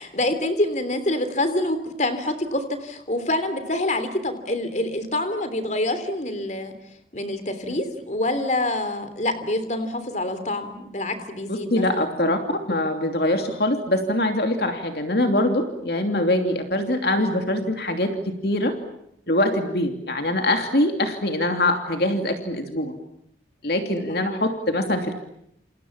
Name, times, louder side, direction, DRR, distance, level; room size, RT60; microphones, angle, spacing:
voice 1, 0.0-6.7 7.1-12.1 24.1-24.4, left 1 dB, 40° left, 10 dB, 3.2 m, -26 dB
voice 2, 11.5-18.7 19.3-22.9 23.6-25.1, left 1 dB, 55° left, 5 dB, 2.8 m, -23 dB
29.0 x 28.5 x 7.3 m, 0.77 s
head